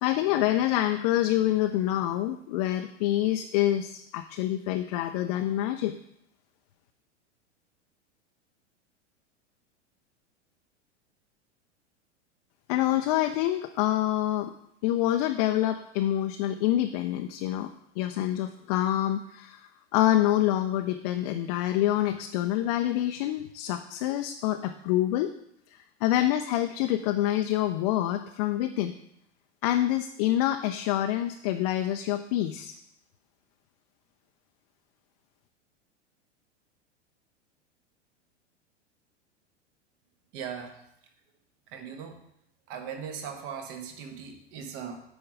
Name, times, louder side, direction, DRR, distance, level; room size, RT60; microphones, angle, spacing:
voice 1, 0.0-6.0 12.7-14.5 14.8-17.7 18.0-19.6 19.9-25.3 25.7-29.0 29.6-32.7, left 13 dB, 35° left, 6 dB, 0.4 m, -26 dB
voice 2, 40.3-40.8 41.7-42.2 42.7-45.0, right 7 dB, 45° right, 6 dB, 1.3 m, -39 dB
8.2 x 5.2 x 4.9 m, 0.75 s
figure-of-eight pair, 90°, 36 cm